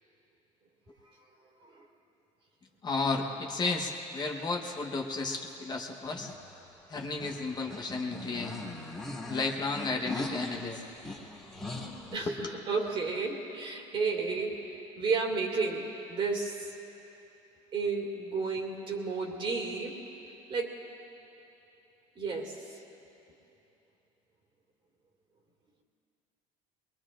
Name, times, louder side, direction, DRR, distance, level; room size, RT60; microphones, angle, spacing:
voice 1, 2.8-6.3 6.9-8.6 9.2-10.8 12.3-12.4, left 3 dB, 30° left, 1 dB, 1.2 m, -33 dB
sound 1, 6.0-12.2, left 2 dB, 5° left, 2.3 m, -41 dB
voice 2, 12.1-16.7 17.7-19.9 20.5-20.7 22.2-22.8, right 4 dB, 40° right, 0 dB, 2.3 m, -32 dB
23.5 x 21.0 x 2.6 m, 2.9 s
cardioid pair, 115°, 14 cm